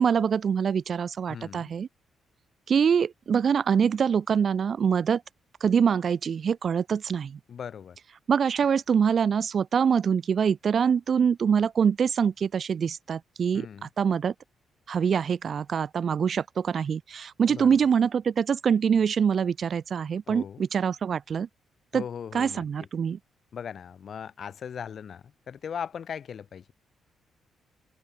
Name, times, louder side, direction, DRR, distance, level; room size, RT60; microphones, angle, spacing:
voice 1, 0.0-1.9 2.7-5.2 5.6-7.4 8.3-14.3 14.9-21.5 21.9-22.0 22.3-23.2, right 7 dB, 45° right, 1.6 m, -24 dB
voice 2, 1.3-1.7 7.5-8.0 13.5-13.9 17.5-17.8 20.3-20.6 21.9-22.6 23.5-26.6, left 7 dB, 50° left, 4.6 m, -38 dB
cardioid pair, 140°, 0 cm